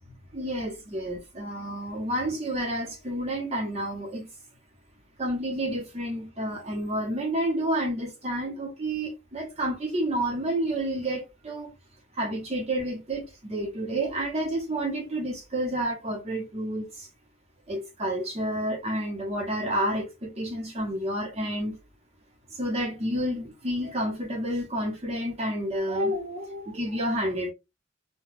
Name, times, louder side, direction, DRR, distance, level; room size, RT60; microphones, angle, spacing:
voice 1, 0.3-4.3 5.2-11.7 12.2-16.9 17.7-21.8 22.6-27.5, right 1 dB, 35° right, 0.8 m, -30 dB
2.2 x 2.1 x 3.2 m
head